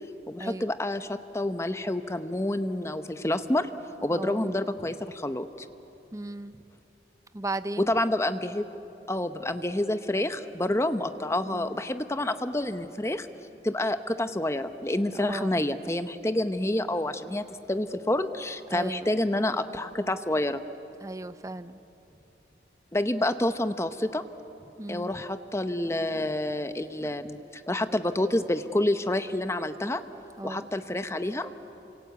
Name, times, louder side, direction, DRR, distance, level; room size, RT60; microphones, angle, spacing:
voice 1, 0.3-3.7 4.0-5.7 7.8-8.8 9.1-13.3 13.6-20.6 22.9-24.2 24.9-30.0 30.4-31.5, left 1 dB, 15° left, 10 dB, 0.8 m, -28 dB
voice 2, 4.1-4.5 6.1-6.6 7.3-7.9 11.5-11.8 15.1-15.6 18.7-19.1 21.0-21.8 24.8-25.2 30.4-30.7, right 2 dB, 20° right, 12 dB, 0.6 m, -36 dB
28.5 x 25.5 x 8.1 m, 3.0 s
head